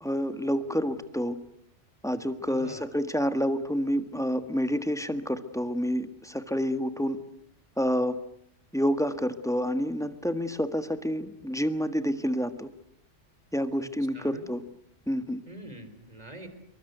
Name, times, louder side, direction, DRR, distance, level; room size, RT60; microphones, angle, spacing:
voice 1, 0.0-1.4 2.0-7.2 7.8-8.2 8.7-12.7 13.5-14.6 15.1-15.4, equal, 5° left, 9 dB, 1.6 m, -28 dB
voice 2, 2.5-2.8 13.8-13.9 14.1-14.5 15.5-16.5, right 1 dB, 35° right, 9 dB, 4.0 m, -44 dB
27.0 x 23.5 x 8.1 m, 0.73 s
omnidirectional pair, 1.3 m